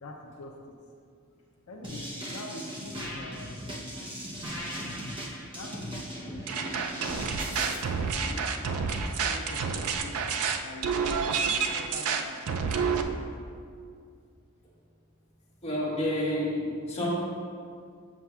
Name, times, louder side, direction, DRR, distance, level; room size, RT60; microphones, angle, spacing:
voice 1, 0.0-0.5 1.7-3.9 5.5-7.5 8.2-10.3 10.6-11.0 11.4-13.5, left 2 dB, 80° left, 0 dB, 0.5 m, -45 dB
sound 1, 1.8-7.8, equal, 25° right, 0.8 m, -38 dB
sound 2, 6.5-13.0, right 5 dB, 80° right, 0.4 m, -29 dB
voice 2, 15.6-17.1, left 1 dB, 30° left, -7 dB, 1.4 m, -29 dB
7.2 x 6.4 x 2.4 m, 2.2 s
head